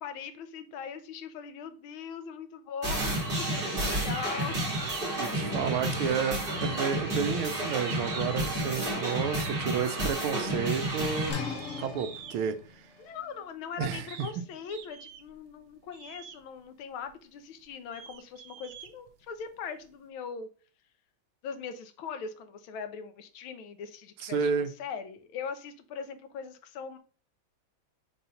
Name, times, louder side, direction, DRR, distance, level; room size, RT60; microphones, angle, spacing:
voice 1, 0.0-4.6 5.9-6.4 13.0-20.5 21.4-27.0, left 6 dB, 80° left, 1.5 m, -40 dB
sound 1, 2.8-11.3, right 1 dB, 30° right, 1.8 m, -31 dB
sound 2, 3.9-4.3 4.5-5.1 5.4-6.0 6.4-8.5 9.0-9.7 10.2-10.5 11.0-12.4 13.2-13.3 13.8-14.3 14.7-15.4 15.9-16.4 17.0-17.1 17.6-19.5, right 8 dB, 70° right, 1.1 m, -45 dB
voice 2, 5.2-11.4 11.8-12.6 13.8-14.3 24.2-24.7, right 7 dB, 85° right, 1.5 m, -31 dB
sound 3, 11.3-16.9, left 5 dB, 45° left, 1.1 m, -42 dB
4.5 x 3.9 x 5.5 m
omnidirectional pair, 2.3 m